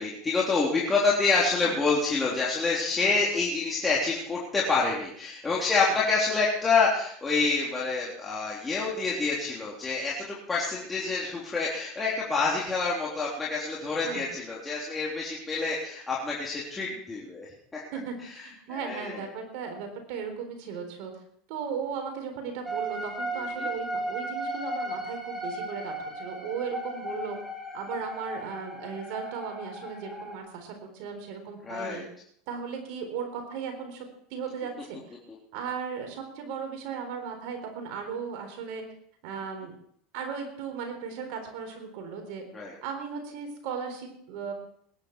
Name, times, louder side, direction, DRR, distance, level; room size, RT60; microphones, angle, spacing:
voice 1, 0.0-17.8 18.7-19.2 23.6-23.7 31.6-32.0 42.5-42.7, left 4 dB, 15° left, -5 dB, 3.5 m, -27 dB
voice 2, 17.9-21.1 21.5-27.4 27.7-32.0 32.5-34.1 34.3-35.0 35.5-38.8 39.2-39.7 40.1-42.4 42.8-44.5, right 6 dB, 65° right, 5 dB, 3.9 m, -36 dB
sound 1, 22.6-30.3, right 1 dB, 5° right, 3.0 m, -35 dB
20.0 x 10.5 x 4.6 m, 0.64 s
supercardioid pair, 110°, 0 cm